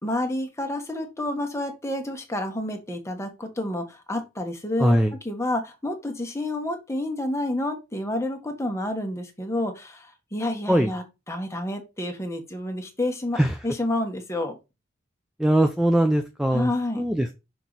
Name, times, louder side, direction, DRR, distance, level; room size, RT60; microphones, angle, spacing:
voice 1, 0.0-5.0 5.2-14.6 16.5-17.0, left 1 dB, 15° left, 4 dB, 1.4 m, -29 dB
voice 2, 4.8-5.1 10.7-10.9 13.4-13.6 15.4-16.7 17.0-17.4, right 1 dB, 5° right, 6 dB, 0.4 m, -21 dB
5.9 x 4.6 x 4.0 m, 0.25 s
head